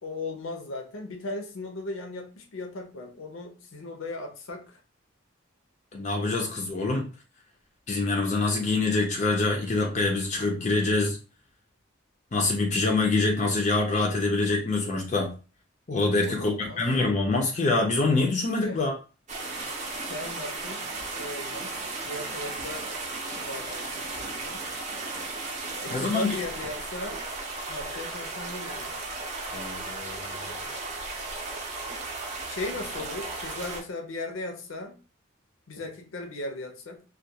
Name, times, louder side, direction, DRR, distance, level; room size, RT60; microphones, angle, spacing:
voice 1, 0.0-4.8 16.2-16.9 18.7-18.9 19.9-20.9 21.1-22.9 23.4-24.8 25.8-27.2 27.7-29.0 32.5-35.0 35.7-37.0, left 2 dB, 80° left, 5 dB, 0.6 m, -37 dB
voice 2, 5.9-7.1 7.9-11.2 12.3-15.3 15.9-18.9 25.9-26.3 29.5-30.4, left 3 dB, 35° left, 1 dB, 0.4 m, -25 dB
sound 1, 19.3-33.8, right 3 dB, 35° right, 0.5 m, -35 dB
2.2 x 2.2 x 2.7 m, 0.35 s
head